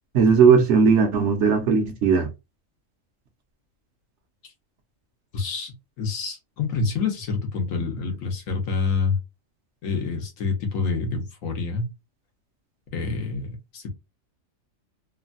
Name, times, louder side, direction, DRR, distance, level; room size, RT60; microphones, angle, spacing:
voice 1, 0.1-2.3, right 5 dB, 65° right, 1.0 m, -17 dB
voice 2, 5.3-9.2 9.8-11.9 12.9-13.9, left 4 dB, 75° left, 1.2 m, -27 dB
3.2 x 2.1 x 2.5 m
omnidirectional pair, 1.4 m